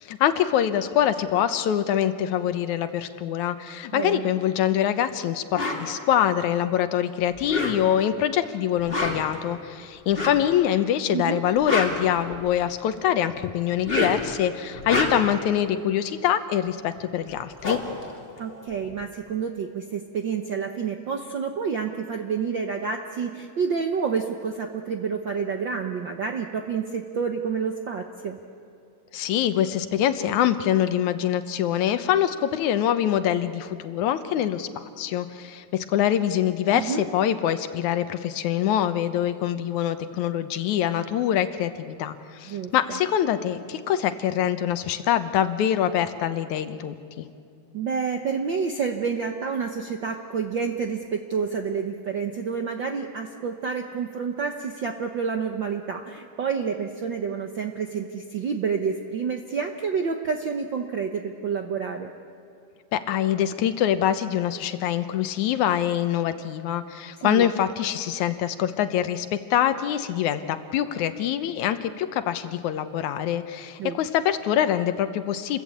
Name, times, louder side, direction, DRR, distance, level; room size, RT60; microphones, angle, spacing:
voice 1, 0.0-17.8 29.1-47.3 62.9-75.6, left 10 dB, 75° left, 10 dB, 2.2 m, -24 dB
voice 2, 3.9-4.3 11.1-11.4 18.4-28.4 36.7-37.0 42.5-43.0 47.7-62.1 67.2-67.5 73.8-74.0, right 6 dB, 65° right, 4 dB, 1.1 m, -29 dB
sound 1, 5.5-5.8 7.3-8.1 8.8-9.4 10.1-10.5 11.4-12.7 13.7-14.3 14.7-15.4 17.0-17.1 17.3-19.0, left 2 dB, 20° left, 2.6 m, -28 dB
28.5 x 21.5 x 8.5 m, 2.6 s
omnidirectional pair, 3.5 m